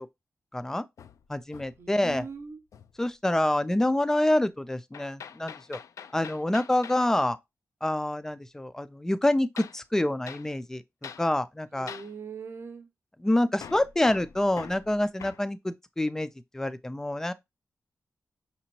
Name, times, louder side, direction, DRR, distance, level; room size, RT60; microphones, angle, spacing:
voice 1, 0.5-0.8 1.3-2.2 3.0-5.8 6.1-7.4 7.8-11.9 13.2-16.3 16.5-17.3, left 1 dB, 10° left, 0.3 m, -27 dB
Hammer, 1.0-2.4 2.7-3.0 4.9-7.1 9.6-9.8 10.3-10.5 11.0-11.3 11.9-12.1 13.6-15.5, left 7 dB, 85° left, 0.3 m, -44 dB
voice 2, 1.8-2.6 11.7-12.9, right 5 dB, 50° right, 0.7 m, -40 dB
5.9 x 2.8 x 2.8 m
wide cardioid pair, 160°, 5 cm